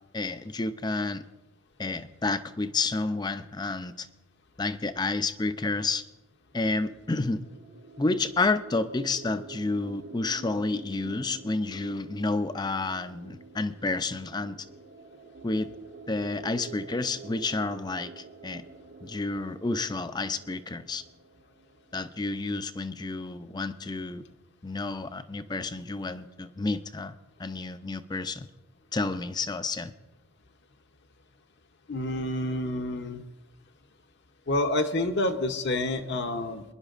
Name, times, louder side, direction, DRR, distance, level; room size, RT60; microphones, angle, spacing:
voice 1, 0.1-1.3 1.8-4.1 4.6-6.0 6.5-7.4 8.0-14.7 15.4-15.7 16.1-18.6 19.0-21.0 21.9-24.2 24.6-28.5 28.9-29.9, left 3 dB, 20° left, 12 dB, 0.4 m, -30 dB
sound 1, 6.7-22.3, right 4 dB, 65° right, 1.4 m, -48 dB
voice 2, 31.9-33.2 34.5-36.6, left 1 dB, 55° left, 6 dB, 0.7 m, -28 dB
23.5 x 11.0 x 2.5 m, 1.1 s
head